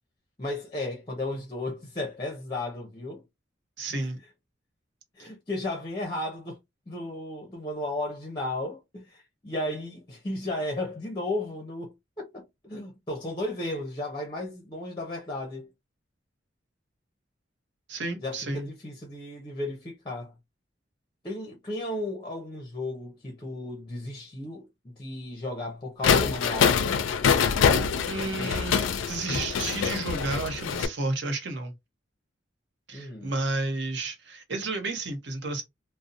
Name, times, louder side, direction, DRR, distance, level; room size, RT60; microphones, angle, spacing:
voice 1, 0.4-3.3 3.9-4.1 5.2-6.6 6.9-15.7 18.2-20.3 21.2-26.8 32.9-33.3, left 1 dB, 25° left, 0.5 m, -34 dB
voice 2, 3.8-4.2 5.2-5.3 17.9-18.7 28.0-31.7 32.9-35.6, right 2 dB, 65° right, 0.7 m, -32 dB
sound 1, 26.0-30.9, left 6 dB, 85° left, 0.4 m, -24 dB
2.6 x 2.0 x 2.5 m
head